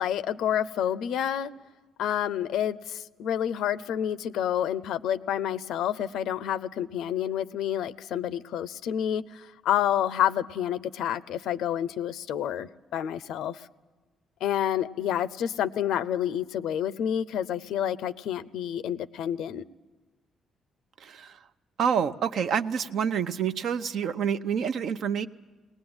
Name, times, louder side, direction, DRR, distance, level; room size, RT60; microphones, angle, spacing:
voice 1, 0.0-1.5 2.0-13.7 14.4-19.6, left 10 dB, 80° left, 16 dB, 0.6 m, -29 dB
voice 2, 21.0-21.4 21.8-25.3, right 7 dB, 70° right, 9 dB, 0.8 m, -27 dB
20.5 x 19.0 x 8.8 m, 1.3 s
cardioid pair, 90°, 0 cm